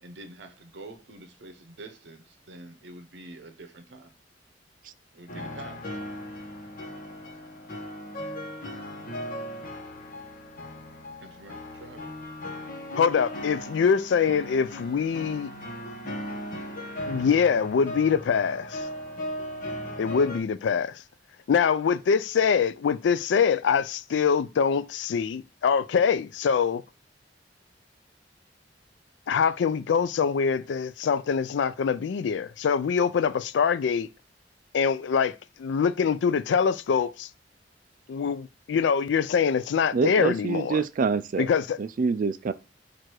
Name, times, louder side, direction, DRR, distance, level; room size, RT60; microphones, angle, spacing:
voice 1, 0.0-4.1 5.1-5.9 11.2-12.1, right 2 dB, 70° right, 0.8 m, -46 dB
sound 1, 5.3-20.4, equal, 50° left, 1.0 m, -37 dB
voice 2, 13.0-15.5 17.1-18.9 20.0-21.0 21.5-26.8 29.3-34.1 34.7-37.3 38.1-40.8 41.4-41.8, left 6 dB, 70° left, 0.3 m, -24 dB
voice 3, 39.9-41.5 41.8-42.5, right 5 dB, 45° right, 0.3 m, -26 dB
4.6 x 2.5 x 4.5 m
head